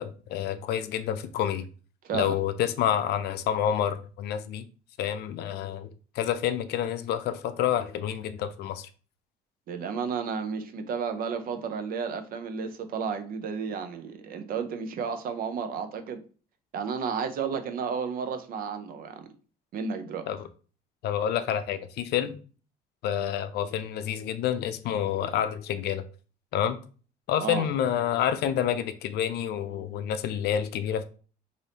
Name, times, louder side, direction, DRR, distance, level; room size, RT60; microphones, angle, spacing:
voice 1, 0.0-1.7 2.1-4.7 5.0-5.9 6.2-8.9 20.3-20.5 21.0-22.4 23.0-26.0 26.5-26.8 27.3-31.0, left 10 dB, 75° left, 0.5 m, -28 dB
voice 2, 2.0-2.4 9.7-16.2 16.7-19.3 19.7-20.3 27.4-27.6, right 6 dB, 60° right, 0.6 m, -32 dB
3.3 x 2.7 x 4.0 m
cardioid pair, 110°, 17 cm